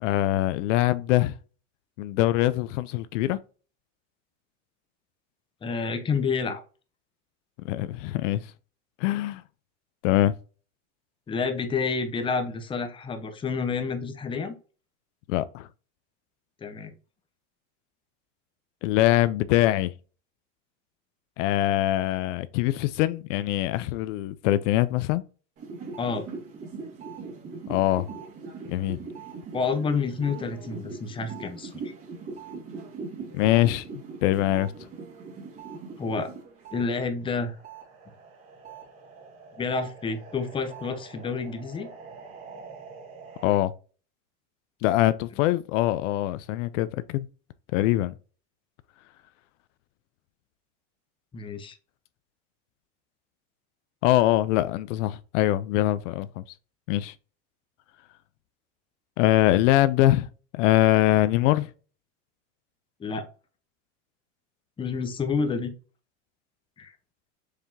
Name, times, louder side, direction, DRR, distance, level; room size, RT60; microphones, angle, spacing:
voice 1, 0.0-1.3 2.0-3.4 7.6-8.5 9.0-9.4 10.0-10.3 15.3-15.7 18.8-19.9 21.4-25.2 27.7-28.1 28.7-29.0 33.3-34.7 43.4-43.7 44.8-47.3 47.7-48.1 54.0-56.4 56.9-57.1 59.2-60.3 60.5-61.7, left 15 dB, 70° left, 0.5 m, -23 dB
voice 2, 5.6-6.6 11.3-14.5 16.6-16.9 26.0-26.3 29.5-31.9 36.0-36.3 36.7-37.5 39.6-41.9 51.3-51.8 63.0-63.3 64.8-65.7 66.8-66.9, left 5 dB, 15° left, 0.6 m, -29 dB
sound 1, 25.6-36.8 37.2-43.6, right 4 dB, 35° right, 1.9 m, -41 dB
4.9 x 3.5 x 2.6 m
supercardioid pair, 130°, 38 cm